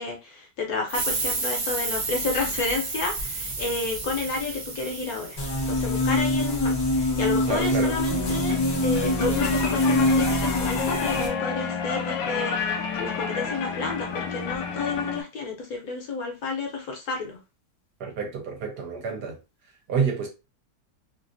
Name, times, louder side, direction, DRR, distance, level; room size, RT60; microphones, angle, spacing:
voice 1, 0.0-5.4 5.7-17.4, left 4 dB, 65° left, 1.1 m, -31 dB
sound 1, 0.9-6.2, right 3 dB, 85° right, 0.4 m, -31 dB
sound 2, 5.4-11.3, left 1 dB, 35° left, 0.3 m, -24 dB
voice 2, 7.5-7.9 18.0-19.3 19.9-20.3, right 6 dB, 70° right, 1.4 m, -28 dB
sound 3, 8.1-15.2, left 5 dB, 80° left, 1.3 m, -30 dB
3.1 x 2.5 x 2.5 m
omnidirectional pair, 1.9 m